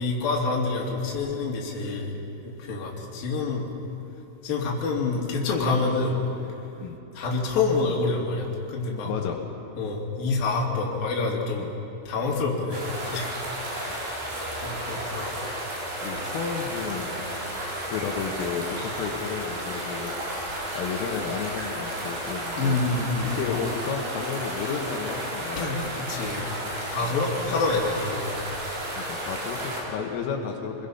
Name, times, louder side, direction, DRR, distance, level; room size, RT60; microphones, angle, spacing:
voice 1, 0.0-2.2 2.4-3.7 4.4-6.2 7.1-9.1 9.8-11.7 12.1-14.3 14.6-15.3 22.6-23.3 25.6-26.4 26.9-28.3, left 3 dB, 50° left, -2 dB, 4.2 m, -27 dB
voice 2, 9.1-9.4 11.6-11.7 16.0-17.1 17.9-20.1 20.7-22.8 23.2-25.9 27.0-27.2 27.5-27.6 29.0-30.8, left 6 dB, 85° left, 1 dB, 4.1 m, -32 dB
sound 1, 12.7-29.8, right 1 dB, 60° right, 6.2 m, -33 dB
27.5 x 21.5 x 5.7 m, 2.9 s
omnidirectional pair, 5.7 m